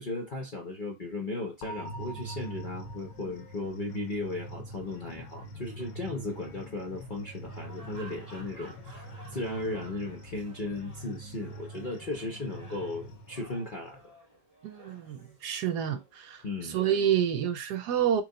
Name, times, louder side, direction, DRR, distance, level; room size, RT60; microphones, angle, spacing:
voice 1, 0.0-14.0 16.4-16.8, left 2 dB, 45° left, 0.6 m, -36 dB
sound 1, 1.6-13.6, right 3 dB, 90° left, 1.4 m, -45 dB
sound 2, 1.8-14.0, left 4 dB, 65° left, 1.0 m, -50 dB
sound 3, 6.3-17.2, right 1 dB, 15° right, 1.0 m, -54 dB
voice 2, 14.6-18.2, right 9 dB, 70° right, 1.1 m, -29 dB
3.3 x 3.1 x 3.8 m
omnidirectional pair, 1.9 m